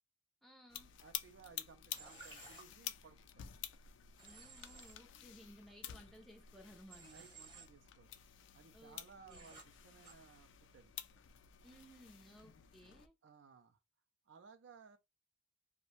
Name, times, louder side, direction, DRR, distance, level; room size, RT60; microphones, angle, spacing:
voice 1, 0.4-0.9 4.2-7.3 8.7-9.0 9.3-9.5 11.6-13.1, equal, ahead, 0.4 m, -59 dB
sound 1, 0.7-13.1, left 11 dB, 75° left, 0.3 m, -51 dB
voice 2, 1.0-3.5 5.1-5.3 6.9-8.2 8.5-10.9 13.2-13.8 14.3-15.0, right 5 dB, 75° right, 0.4 m, -60 dB
Human voice / Train, 1.9-2.6 4.2-4.9 6.9-7.7 9.3-9.6 10.0-10.1, right 4 dB, 25° right, 0.8 m, -56 dB
2.5 x 2.1 x 2.9 m
head